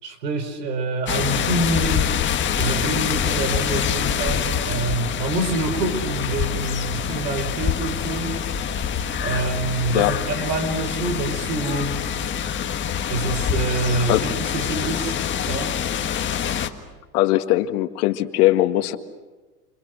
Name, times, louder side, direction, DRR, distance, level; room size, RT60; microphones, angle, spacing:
voice 1, 0.0-2.2 2.6-8.4 9.2-12.0 13.1-14.2 14.5-15.1 15.4-15.7, right 2 dB, 90° right, 10 dB, 5.0 m, -26 dB
sound 1, 1.1-16.7, left 8 dB, 25° left, 1.7 m, -25 dB
voice 2, 17.1-19.0, left 16 dB, 65° left, 8 dB, 1.9 m, -20 dB
29.0 x 28.0 x 6.4 m, 1.3 s
supercardioid pair, 135°, 48 cm